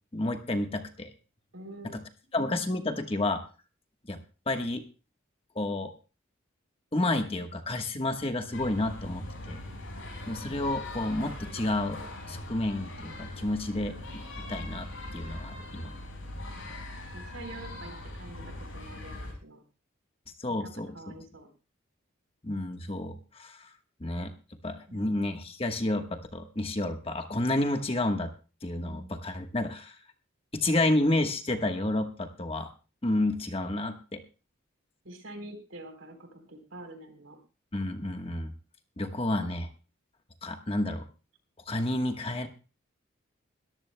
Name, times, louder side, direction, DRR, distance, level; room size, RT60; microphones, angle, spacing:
voice 1, 0.1-1.1 1.8-2.0 2.3-3.4 4.1-4.2 4.5-4.8 5.5-5.9 6.9-9.6 10.3-12.0 12.3-14.0 14.5-14.9 15.1-15.9 20.4-21.0 22.4-23.7 24.0-24.3 24.6-28.3 28.6-29.9 30.5-32.7 33.0-34.2 37.7-38.5 39.0-39.7 40.4-41.1 41.7-42.5, left 2 dB, 30° left, 6 dB, 1.2 m, -30 dB
voice 2, 1.5-2.0 17.1-19.6 20.6-21.5 24.9-25.4 28.7-29.1 35.0-37.4, right 1 dB, 80° right, 5 dB, 3.8 m, -46 dB
sound 1, 8.5-19.3, left 1 dB, 80° left, 5.9 m, -41 dB
22.0 x 14.0 x 2.2 m, 0.33 s
head